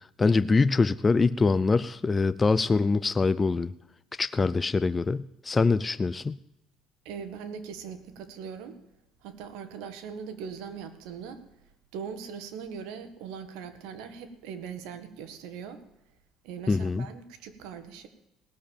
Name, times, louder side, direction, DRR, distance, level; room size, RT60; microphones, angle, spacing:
voice 1, 0.2-3.7 4.2-6.4 16.7-17.1, left 4 dB, 20° left, 14 dB, 0.4 m, -24 dB
voice 2, 7.1-8.8 9.2-11.4 11.9-15.8 16.4-18.1, right 6 dB, 85° right, 9 dB, 1.8 m, -40 dB
17.5 x 7.5 x 8.6 m, 0.88 s
cardioid pair, 115°, 0 cm